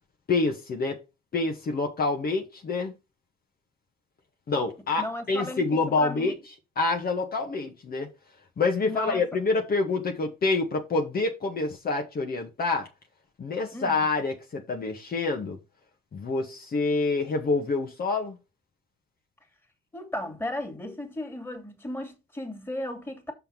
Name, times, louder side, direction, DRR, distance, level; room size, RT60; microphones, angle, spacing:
voice 1, 0.3-1.0 1.3-2.9 4.5-6.3 6.8-8.1 8.6-12.9 13.4-15.6 16.1-18.4, left 3 dB, 50° left, 1.7 m, -27 dB
voice 2, 5.0-6.3 8.8-9.2 13.7-14.1 19.9-23.3, left 1 dB, 10° left, 2.6 m, -35 dB
6.2 x 5.6 x 5.4 m
cardioid pair, 90°, 20 cm